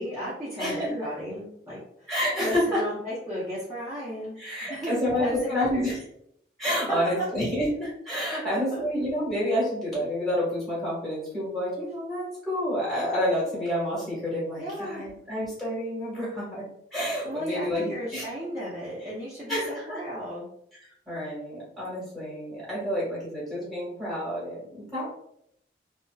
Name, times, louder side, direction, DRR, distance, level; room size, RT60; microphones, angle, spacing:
voice 1, 0.0-2.1 2.4-5.9 7.0-7.2 8.3-8.8 14.6-15.1 17.2-20.5, equal, 15° right, -11 dB, 0.7 m, -34 dB
voice 2, 0.6-1.1 2.1-2.8 4.4-6.0 6.6-16.6 16.9-18.3 19.5-20.0 21.1-25.1, equal, ahead, -8 dB, 1.3 m, -29 dB
2.8 x 2.0 x 2.2 m, 0.73 s
head